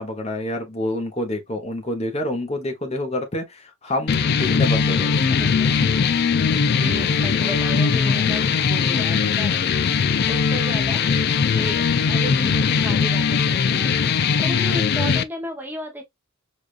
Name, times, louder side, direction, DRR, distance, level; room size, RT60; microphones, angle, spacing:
voice 1, 0.0-5.1 7.4-7.6, left 1 dB, 30° left, 1.0 m, -28 dB
sound 1, 4.1-15.2, left 6 dB, 50° left, 0.3 m, -20 dB
voice 2, 5.2-5.7 6.8-11.0 11.5-13.9 14.4-16.0, equal, 10° right, 0.7 m, -33 dB
4.9 x 2.4 x 2.4 m
head